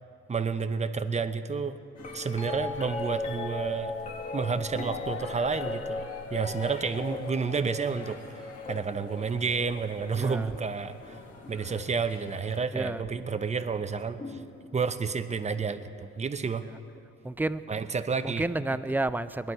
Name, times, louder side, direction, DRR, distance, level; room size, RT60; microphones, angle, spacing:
voice 1, 0.3-1.8 2.1-3.9 4.3-11.2 11.5-14.4 14.7-16.6 17.7-18.4, right 5 dB, 25° right, 10 dB, 0.7 m, -30 dB
sound 1, 1.9-12.7, left 4 dB, 55° left, 1.6 m, -50 dB
sound 2, 2.0-12.1 13.0-13.5 14.2-15.2 17.0-17.1, left 3 dB, 25° left, 1.2 m, -38 dB
voice 2, 17.2-17.6 18.2-19.5, right 2 dB, 5° right, 14 dB, 0.4 m, -30 dB
21.0 x 10.5 x 4.8 m, 2.5 s
cardioid pair, 90°, 30 cm